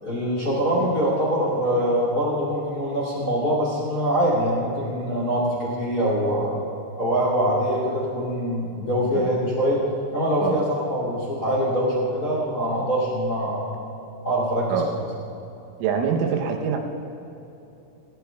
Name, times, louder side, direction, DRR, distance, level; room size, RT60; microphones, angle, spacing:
voice 1, 0.0-6.5 6.9-9.8 10.1-13.6 14.2-14.8, equal, 30° left, -6 dB, 1.9 m, -24 dB
voice 2, 15.8-16.8, right 7 dB, 80° right, 3 dB, 3.4 m, -24 dB
20.0 x 15.5 x 2.3 m, 2.9 s
omnidirectional pair, 5.8 m